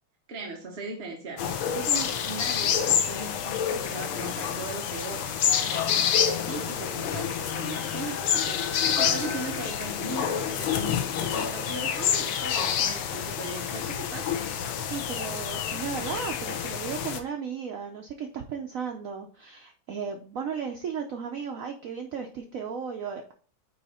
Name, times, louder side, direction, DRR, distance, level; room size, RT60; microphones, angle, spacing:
voice 1, 0.3-8.6 9.0-14.5, right 3 dB, 45° right, 1 dB, 0.9 m, -38 dB
sound 1, 1.4-17.2, left 8 dB, 90° left, 1.6 m, -28 dB
voice 2, 14.9-23.3, right 6 dB, 75° right, 3 dB, 0.7 m, -35 dB
9.0 x 3.1 x 4.2 m, 0.43 s
omnidirectional pair, 2.2 m